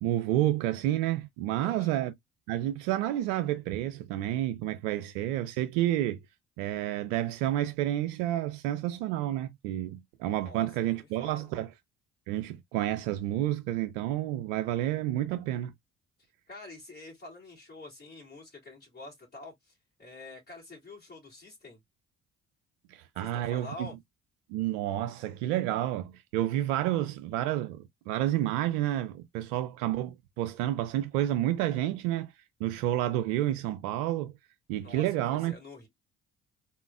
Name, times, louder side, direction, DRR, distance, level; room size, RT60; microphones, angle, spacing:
voice 1, 0.0-2.1 2.5-6.2 6.6-11.7 12.3-15.7 22.9-23.9 24.5-34.3 34.7-35.5, right 13 dB, 80° right, 0.5 m, -30 dB
voice 2, 1.6-2.0 10.3-11.5 16.2-21.8 23.2-24.0 34.8-35.9, left 2 dB, 25° left, 3.0 m, -47 dB
4.1 x 3.7 x 2.4 m
hypercardioid pair, 45°, 37 cm